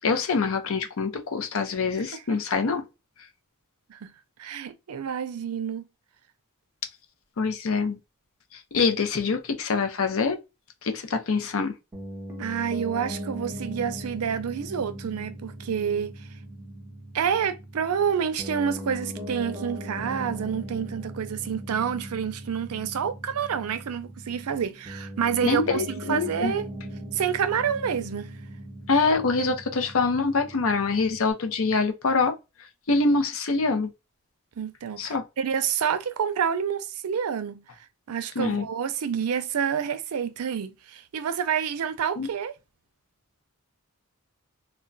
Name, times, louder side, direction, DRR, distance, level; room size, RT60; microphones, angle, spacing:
voice 1, 0.0-2.8 7.4-8.0 8.7-10.4 10.8-11.7 25.4-26.5 28.9-32.4 32.9-33.9 35.0-35.2 38.4-38.6 42.2-42.3, left 4 dB, 70° left, 0.6 m, -25 dB
voice 2, 2.1-2.4 3.9-4.1 4.4-5.9 12.4-16.3 17.1-26.7 27.1-28.3 34.6-37.6 38.1-42.5, right 7 dB, 85° right, 0.4 m, -28 dB
Piano, 11.9-31.3, right 1 dB, 10° right, 0.7 m, -39 dB
2.2 x 2.2 x 3.8 m
head